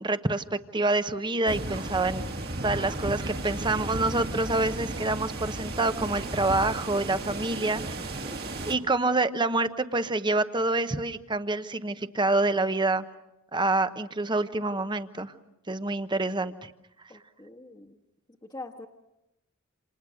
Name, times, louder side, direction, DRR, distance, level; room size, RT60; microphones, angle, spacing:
voice 1, 0.0-2.2 2.6-8.1 8.7-13.0 13.5-15.3 15.7-16.7, right 2 dB, 20° right, 11 dB, 1.0 m, -27 dB
sound 1, 1.5-8.7, right 2 dB, 50° right, 2.1 m, -34 dB
voice 2, 17.1-18.0 18.4-18.9, left 2 dB, 20° left, -2 dB, 1.4 m, -44 dB
28.5 x 28.0 x 6.4 m, 0.89 s
head